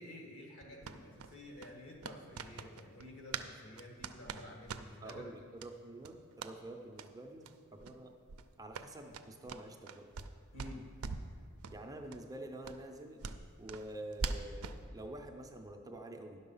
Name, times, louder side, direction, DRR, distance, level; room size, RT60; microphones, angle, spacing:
voice 1, 0.0-5.3 10.5-10.9, left 1 dB, 60° left, 1 dB, 1.7 m, -51 dB
sound 1, 0.8-3.5 3.8-5.2 5.6-5.7 6.0-6.5 6.9-7.1 7.4-7.5 7.8-8.0 8.3-10.3 10.6-11.3 11.6-11.8 12.1-12.2 12.6-14.8, right 4 dB, 75° right, 0.5 m, -43 dB
voice 2, 5.0-8.1 8.6-10.1 11.7-13.2 13.6-16.4, right 1 dB, 15° right, 3 dB, 0.6 m, -47 dB
10.5 x 6.4 x 5.5 m, 2.2 s
head